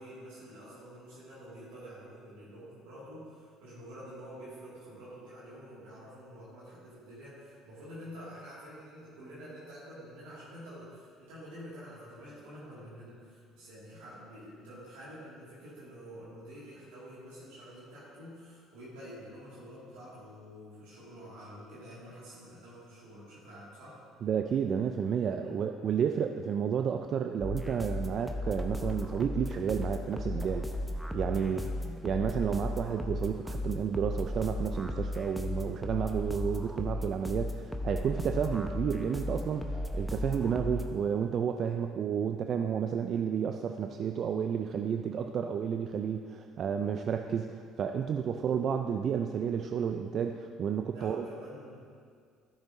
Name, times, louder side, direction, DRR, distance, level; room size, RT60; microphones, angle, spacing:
voice 1, 0.0-24.0 25.4-25.6 31.3-31.7 43.7-44.0 50.9-51.8, equal, 80° right, -9 dB, 2.1 m, -48 dB
voice 2, 24.2-30.7 31.1-31.7 32.0-51.2, right 7 dB, 50° right, 6 dB, 0.4 m, -31 dB
sound 1, 27.4-40.9, left 1 dB, ahead, 0.9 m, -35 dB
13.0 x 7.0 x 2.7 m, 2.1 s
hypercardioid pair, 60°, 0 cm